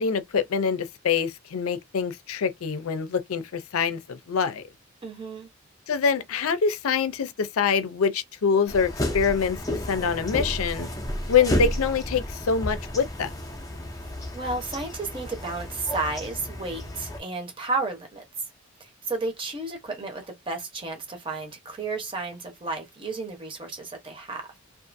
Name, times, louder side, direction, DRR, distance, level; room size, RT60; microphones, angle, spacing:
voice 1, 0.0-4.6 5.9-10.9 11.3-13.3, left 6 dB, 90° left, 0.5 m, -25 dB
voice 2, 5.0-5.5 14.3-18.2 18.8-24.5, right 3 dB, 25° right, 0.8 m, -32 dB
sound 1, 8.7-17.2, left 1 dB, 15° left, 0.5 m, -32 dB
2.5 x 2.4 x 2.5 m
head